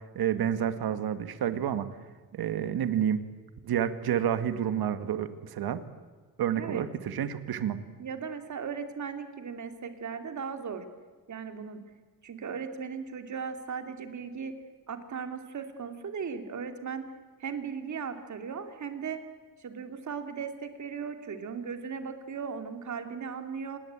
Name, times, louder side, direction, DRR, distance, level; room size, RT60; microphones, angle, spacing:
voice 1, 0.0-1.9 2.3-3.2 3.6-5.8 6.4-7.8, right 9 dB, 75° right, 11 dB, 1.9 m, -29 dB
voice 2, 8.0-10.8 11.3-11.8 12.2-14.5 14.9-17.0 17.4-19.2 19.6-23.8, right 6 dB, 50° right, 7 dB, 2.9 m, -37 dB
27.5 x 20.0 x 8.9 m, 1.4 s
cardioid pair, 130°, 38 cm